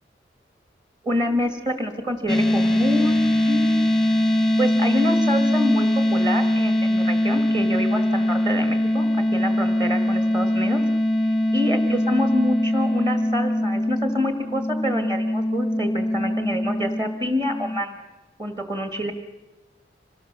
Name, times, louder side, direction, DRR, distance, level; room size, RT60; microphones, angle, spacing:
voice 1, 1.0-3.8 4.6-9.1 9.3-10.8 11.5-17.9 18.4-19.1, left 1 dB, 25° right, 7 dB, 1.8 m, -27 dB
sound 1, 2.3-17.8, left 1 dB, 5° left, 0.9 m, -22 dB
26.0 x 19.0 x 6.8 m, 1.1 s
head